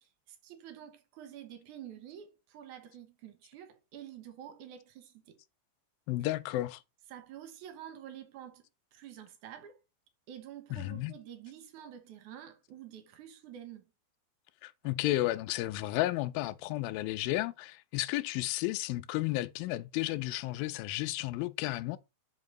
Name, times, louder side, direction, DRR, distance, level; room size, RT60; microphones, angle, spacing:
voice 1, 0.0-5.4 7.1-8.6 8.9-9.8 10.3-13.9, right 10 dB, 65° right, 2.4 m, -48 dB
voice 2, 6.1-6.8 10.7-11.1 14.6-22.0, left 16 dB, 85° left, 2.3 m, -33 dB
7.4 x 5.4 x 3.8 m
omnidirectional pair, 4.3 m